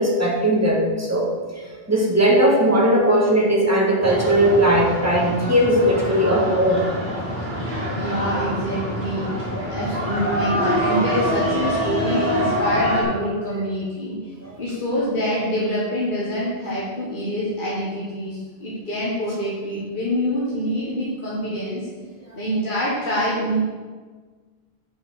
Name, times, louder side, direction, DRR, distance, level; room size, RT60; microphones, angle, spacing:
voice 1, 0.0-1.3 1.9-6.8 14.4-14.5, right 1 dB, 15° right, -2 dB, 1.5 m, -18 dB
sound 1, 4.0-13.0, equal, 45° right, 2.9 m, -25 dB
voice 2, 7.9-21.9 22.4-23.6, equal, 45° left, -7 dB, 1.7 m, -26 dB
7.8 x 6.2 x 4.9 m, 1.4 s
omnidirectional pair, 1.2 m